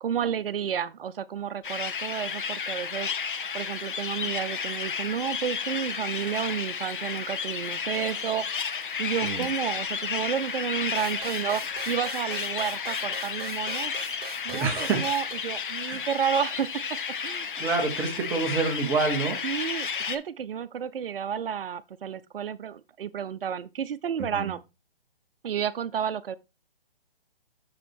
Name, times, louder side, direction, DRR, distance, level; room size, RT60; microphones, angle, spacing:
voice 1, 0.0-3.1 3.5-8.5 9.0-13.9 14.4-14.7 15.0-16.7 17.2-17.5 19.4-24.6 25.4-26.4, right 8 dB, 70° right, 0.6 m, -31 dB
sound 1, 1.6-20.2, left 6 dB, 55° left, 0.9 m, -32 dB
sound 2, 10.9-15.3, right 6 dB, 25° right, 1.8 m, -41 dB
voice 2, 14.5-15.1 15.9-16.0 17.6-19.4 24.2-24.5, right 4 dB, 5° right, 0.7 m, -27 dB
6.4 x 4.9 x 4.5 m
hypercardioid pair, 150°, 30 cm